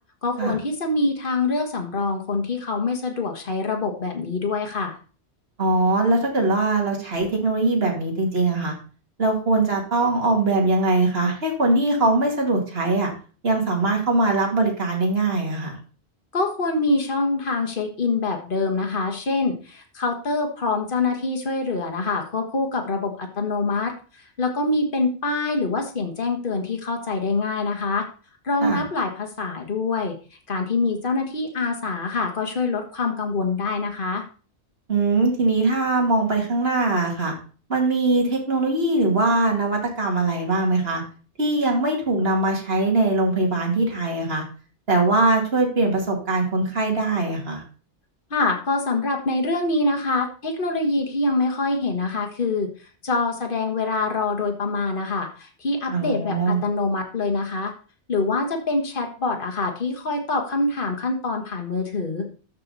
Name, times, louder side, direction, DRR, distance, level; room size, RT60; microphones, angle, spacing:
voice 1, 0.2-5.0 16.3-28.1 28.4-30.2 30.5-34.2 48.3-52.7 53.0-57.7 58.1-62.3, left 3 dB, 50° left, 3 dB, 1.8 m, -25 dB
voice 2, 5.6-8.7 9.2-13.1 13.4-15.8 28.6-28.8 34.9-37.3 37.7-41.0 41.4-44.4 44.9-47.6 55.9-56.6, right 2 dB, 60° right, 0 dB, 2.6 m, -21 dB
13.0 x 5.7 x 4.1 m, 0.38 s
omnidirectional pair, 1.1 m